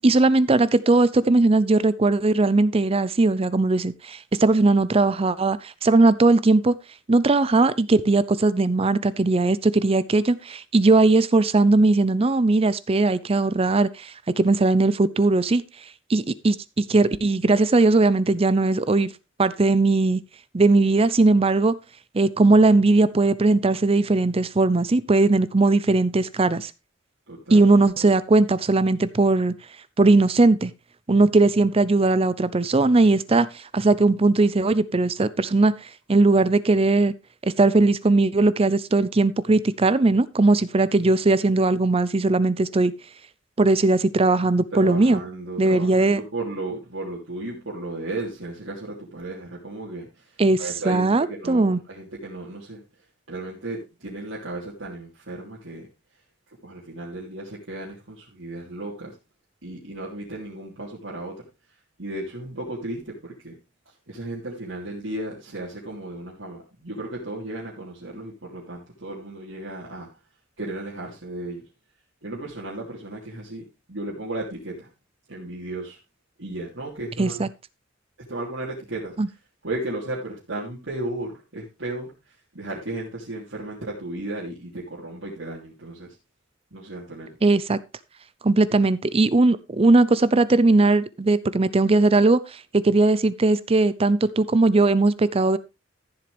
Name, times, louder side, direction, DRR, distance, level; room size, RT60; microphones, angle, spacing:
voice 1, 0.0-6.8 7.1-15.6 16.1-19.1 19.4-20.2 20.5-21.8 22.1-26.7 27.5-29.5 30.0-30.7 31.1-35.7 36.1-37.1 37.4-42.9 43.6-45.2 45.6-46.2 50.4-50.6 50.9-51.8 77.2-77.5 79.2-79.3 87.4-87.8 88.4-95.6, right 2 dB, 30° right, 0.5 m, -19 dB
voice 2, 27.3-27.7 28.0-28.1 44.7-52.8 53.3-55.9 56.6-59.1 59.6-61.5 62.0-63.5 64.1-70.1 70.6-71.6 72.2-74.9 75.3-76.0 76.4-77.4 78.3-79.1 79.6-86.1 86.7-87.4, right 2 dB, 80° right, 3.2 m, -34 dB
14.5 x 7.6 x 3.4 m
head